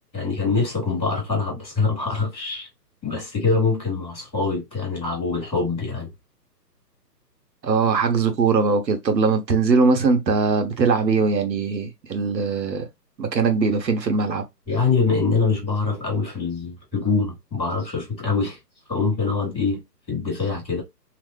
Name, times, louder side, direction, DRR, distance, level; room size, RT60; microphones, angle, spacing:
voice 1, 0.1-2.7 3.0-6.1 14.7-18.6 18.9-19.8 20.1-20.8, left 4 dB, 5° left, 0.9 m, -24 dB
voice 2, 7.6-12.9 13.2-14.4, right 4 dB, 85° right, 1.2 m, -21 dB
3.1 x 2.1 x 3.2 m
hypercardioid pair, 175°, 50 cm